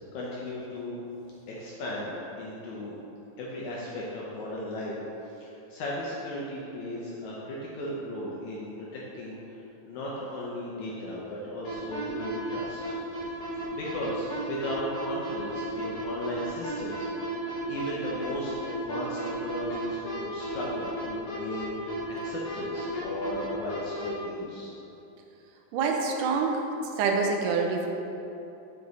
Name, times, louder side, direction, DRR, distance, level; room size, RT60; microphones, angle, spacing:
voice 1, 0.1-1.0 1.6-3.0 3.4-5.0 5.4-9.6 9.8-13.3 13.7-17.1 17.7-24.7, left 1 dB, 75° left, -5 dB, 1.8 m, -36 dB
sound 1, 11.6-24.1, right 1 dB, 60° left, 2.7 m, -34 dB
voice 2, 25.7-26.7 27.0-27.9, right 4 dB, 80° right, 2 dB, 2.0 m, -26 dB
6.2 x 4.9 x 4.0 m, 2.9 s
omnidirectional pair, 4.0 m